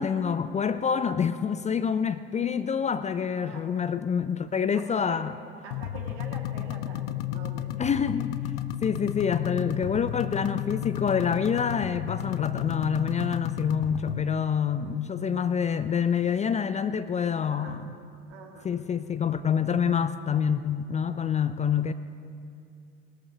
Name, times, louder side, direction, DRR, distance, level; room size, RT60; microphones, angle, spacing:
voice 1, 0.0-5.3 7.8-8.4 8.8-17.9 18.6-21.9, left 7 dB, 20° left, 12 dB, 0.5 m, -27 dB
voice 2, 3.3-3.8 4.7-5.2 5.6-7.7 17.4-17.8 18.3-18.7, right 5 dB, 65° right, 0 dB, 2.2 m, -45 dB
sound 1, 5.7-14.2, left 12 dB, 65° left, 0.7 m, -33 dB
20.5 x 13.5 x 2.9 m, 2.4 s
figure-of-eight pair, 55°, 32 cm